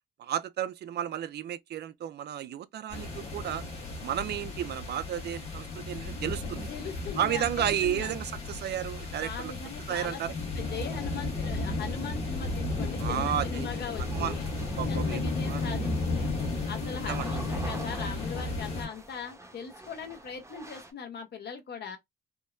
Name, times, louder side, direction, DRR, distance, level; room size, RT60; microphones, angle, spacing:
voice 1, 0.2-3.6 4.0-6.7 7.2-9.5 9.9-10.3 13.0-13.7 14.1-14.3 14.8-15.6 17.1-17.3, right 10 dB, 55° right, 0.4 m, -32 dB
sound 1, 2.9-18.9, left 2 dB, 30° left, 1.6 m, -34 dB
voice 2, 6.7-8.1 9.2-10.2 10.6-14.5 14.9-16.3 16.7-22.0, left 6 dB, 55° left, 1.1 m, -40 dB
sound 2, 13.9-20.9, right 1 dB, 15° right, 0.9 m, -46 dB
3.5 x 2.1 x 2.5 m
cardioid pair, 90°, 20 cm